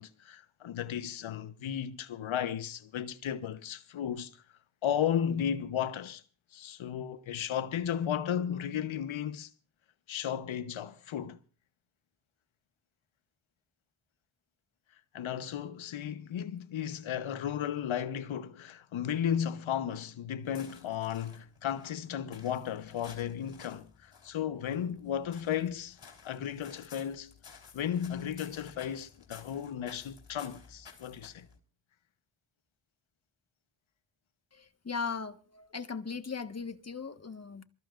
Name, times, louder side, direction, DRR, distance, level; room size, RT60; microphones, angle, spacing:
voice 1, 0.0-4.4 4.8-6.2 6.5-9.5 10.1-11.4 15.1-26.0 26.2-27.3 27.7-31.5, left 9 dB, 80° left, 1.1 m, -34 dB
sound 1, 20.4-31.6, left 6 dB, 60° left, 3.8 m, -55 dB
voice 2, 34.5-37.6, left 5 dB, 30° left, 1.5 m, -38 dB
27.0 x 14.0 x 2.5 m
cardioid pair, 50°, 47 cm